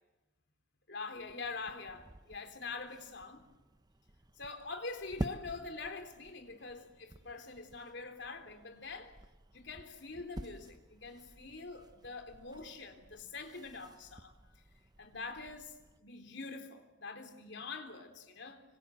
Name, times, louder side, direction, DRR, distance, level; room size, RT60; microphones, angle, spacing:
voice 1, 0.9-3.4 4.4-9.1 9.5-14.3 15.0-18.6, left 4 dB, 65° left, 3.7 m, -45 dB
sound 1, 1.1-16.0, right 1 dB, 20° right, 0.8 m, -49 dB
26.0 x 25.5 x 7.8 m
head